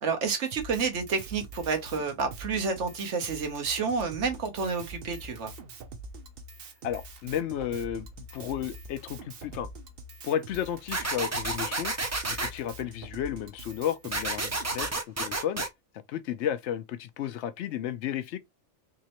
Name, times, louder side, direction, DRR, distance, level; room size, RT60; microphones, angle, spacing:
voice 1, 0.0-5.5, right 5 dB, 80° right, 1.3 m, -30 dB
Drum kit, 0.5-14.9, right 2 dB, 55° right, 0.9 m, -44 dB
voice 2, 6.8-9.7 10.2-15.7 16.1-18.4, left 10 dB, 75° left, 0.9 m, -33 dB
sound 1, 10.9-12.5 14.1-15.7, right 2 dB, 30° right, 0.3 m, -30 dB
3.6 x 3.2 x 2.9 m
omnidirectional pair, 1.2 m